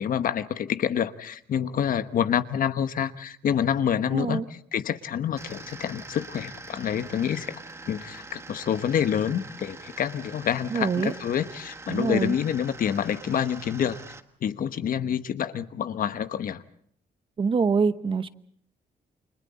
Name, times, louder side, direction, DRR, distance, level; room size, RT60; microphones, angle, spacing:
voice 1, 0.0-7.6 7.9-14.0 14.4-16.6, left 9 dB, 55° left, 11 dB, 1.2 m, -27 dB
voice 2, 4.1-4.4 10.7-11.1 11.9-12.4 17.4-18.3, right 5 dB, 30° right, 12 dB, 1.0 m, -25 dB
sound 1, 5.4-14.2, right 3 dB, 15° right, 1.4 m, -44 dB
29.5 x 26.5 x 4.2 m, 0.63 s
wide cardioid pair, 170°, 17 cm